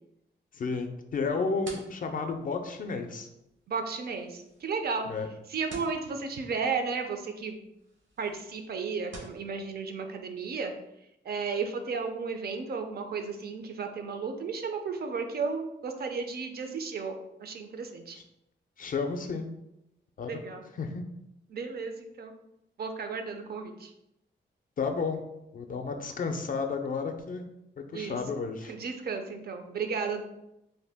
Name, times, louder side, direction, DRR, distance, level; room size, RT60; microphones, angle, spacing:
voice 1, 0.5-3.3 5.1-5.3 18.1-18.2 18.8-19.5 20.2-20.4 20.8-21.0 24.8-25.2 25.5-27.4 27.9-28.7, left 4 dB, 45° left, 5 dB, 0.4 m, -32 dB
sound 1, 1.1-9.4, right 2 dB, 80° right, 0.9 m, -52 dB
voice 2, 3.7-5.1 5.5-7.6 8.2-10.7 11.2-18.2 20.2-20.6 21.5-22.3 22.8-23.9 27.9-28.2 28.7-30.2, right 5 dB, 55° right, 6 dB, 0.4 m, -34 dB
2.6 x 2.1 x 3.4 m, 0.86 s
cardioid pair, 90°, 20 cm